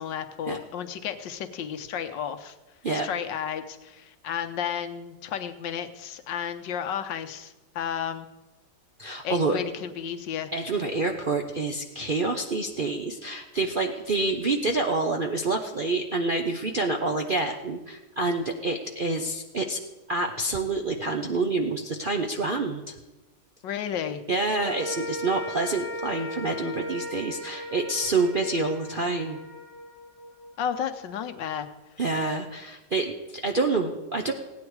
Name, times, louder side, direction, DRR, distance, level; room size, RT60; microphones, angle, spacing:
voice 1, 0.0-2.5 2.9-8.3 9.2-10.5 23.6-24.2 30.6-31.7, left 8 dB, 85° left, 8 dB, 1.5 m, -32 dB
voice 2, 9.0-9.6 10.5-19.8 20.1-22.9 24.3-29.4 32.0-34.3, right 3 dB, 55° right, 3 dB, 0.6 m, -27 dB
sound 1, 24.5-31.0, equal, 75° right, 2.7 m, -38 dB
16.5 x 9.7 x 4.7 m, 1.1 s
omnidirectional pair, 1.9 m